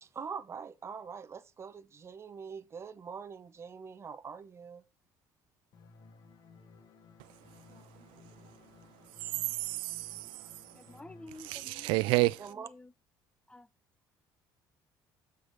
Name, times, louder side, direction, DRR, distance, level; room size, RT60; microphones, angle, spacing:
voice 1, 0.0-4.8 12.4-12.7, right 6 dB, 30° right, 0.7 m, -44 dB
sound 1, 5.7-11.3, left 4 dB, 55° left, 1.6 m, -57 dB
voice 2, 7.2-8.5 9.1-10.9 11.4-12.5, right 22 dB, 80° right, 0.3 m, -33 dB
voice 3, 10.8-11.9 12.7-12.9 13.5-13.7, left 2 dB, 10° left, 0.4 m, -50 dB
8.0 x 4.8 x 4.0 m
cardioid pair, 105°, 8 cm